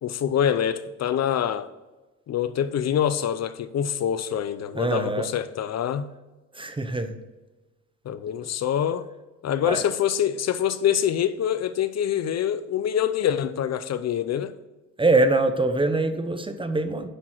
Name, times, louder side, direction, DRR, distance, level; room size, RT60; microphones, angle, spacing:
voice 1, 0.0-1.7 2.3-6.1 8.1-9.1 9.4-14.5, left 9 dB, 60° left, 0.7 m, -25 dB
voice 2, 4.7-5.3 6.5-7.2 9.6-9.9 15.0-17.1, right 2 dB, 15° right, 0.9 m, -23 dB
10.0 x 6.2 x 4.4 m
cardioid pair, 90°, 30 cm